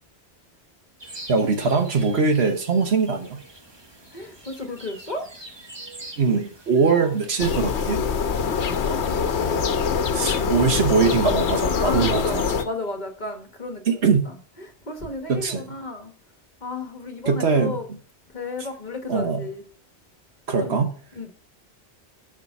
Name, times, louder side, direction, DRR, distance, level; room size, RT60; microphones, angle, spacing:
sound 1, 1.0-7.6, right 2 dB, 25° right, 1.1 m, -44 dB
voice 1, 1.3-3.4 6.2-8.0 10.1-12.4 13.9-14.3 15.3-15.6 17.3-17.8 19.1-19.5 20.5-20.9, right 5 dB, 65° right, 5 dB, 1.3 m, -22 dB
voice 2, 4.1-5.3 7.0-7.2 8.8-9.6 11.5-16.1 16.6-18.0 18.3-19.6 20.6-20.8 21.1-21.3, left 2 dB, 40° left, 4 dB, 1.2 m, -33 dB
sound 2, 7.4-12.6, left 6 dB, 75° left, 1.1 m, -24 dB
6.7 x 5.1 x 5.8 m, 0.42 s
omnidirectional pair, 1.2 m